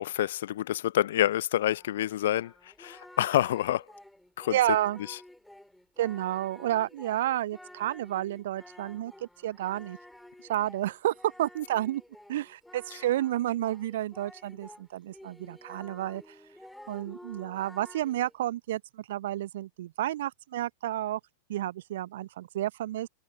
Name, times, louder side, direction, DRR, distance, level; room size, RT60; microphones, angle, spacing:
voice 1, 0.0-3.8 4.4-4.6 5.1-5.2, left 13 dB, 60° left, 0.9 m, -27 dB
Singing, 1.7-14.8 15.1-18.4, left 1 dB, 5° left, 5.6 m, -51 dB
voice 2, 4.5-5.0 6.0-10.0 10.5-12.0 12.3-16.3 16.9-21.2 21.5-23.1, right 13 dB, 55° right, 0.7 m, -31 dB
figure-of-eight pair, 90°, 0 cm